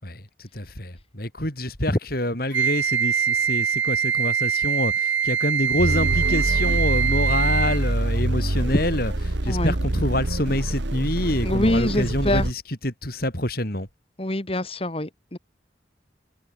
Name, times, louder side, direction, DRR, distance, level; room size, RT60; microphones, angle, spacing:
voice 1, 0.0-13.9, left 1 dB, 50° left, 6.0 m, -27 dB
Wind instrument woodwind instrument, 2.5-7.9, right 7 dB, 85° right, 4.2 m, -23 dB
sound 1, 5.8-12.5, right 1 dB, 70° right, 1.7 m, -25 dB
voice 2, 11.4-12.5 14.2-15.4, left 1 dB, 30° left, 1.7 m, -25 dB
head